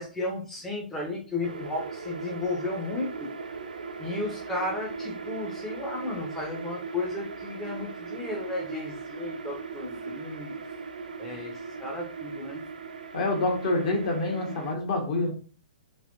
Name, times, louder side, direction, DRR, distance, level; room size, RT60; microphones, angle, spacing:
voice 1, 0.0-3.3 4.0-10.5 11.2-12.6, left 2 dB, 5° left, -2 dB, 0.6 m, -34 dB
sound 1, 1.4-14.7, right 5 dB, 70° right, 0.4 m, -38 dB
voice 2, 13.1-15.3, left 2 dB, 45° left, 1 dB, 1.2 m, -27 dB
3.3 x 2.8 x 2.5 m, 0.38 s
figure-of-eight pair, 115°, 5 cm